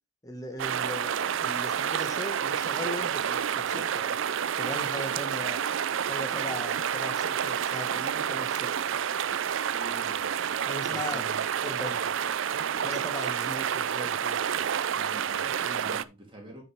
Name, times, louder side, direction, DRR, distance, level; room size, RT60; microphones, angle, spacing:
voice 1, 0.2-4.2 4.5-5.6 6.1-8.7 10.6-11.2 11.6-12.1 12.8-14.5 15.6-16.1, left 1 dB, 15° left, 1.7 m, -39 dB
sound 1, 0.6-16.0, right 8 dB, 60° right, 0.4 m, -29 dB
voice 2, 9.7-10.2 10.9-11.4 14.9-15.5 15.7-16.6, right 1 dB, 25° right, 3.3 m, -45 dB
9.3 x 6.3 x 3.5 m
head